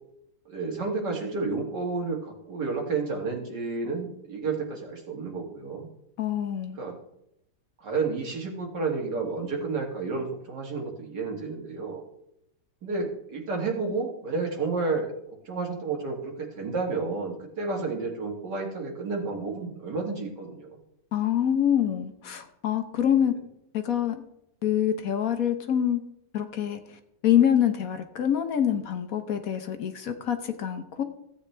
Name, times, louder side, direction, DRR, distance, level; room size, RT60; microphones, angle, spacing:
voice 1, 0.5-5.9 6.8-6.9 7.8-12.0 12.8-15.1 15.5-20.8, right 4 dB, 75° right, 0 dB, 2.4 m, -31 dB
voice 2, 6.2-6.8 21.1-23.4 23.7-24.2 24.6-26.0 26.3-31.0, left 9 dB, 60° left, 8 dB, 1.1 m, -25 dB
15.0 x 8.6 x 3.3 m, 0.80 s
omnidirectional pair, 1.9 m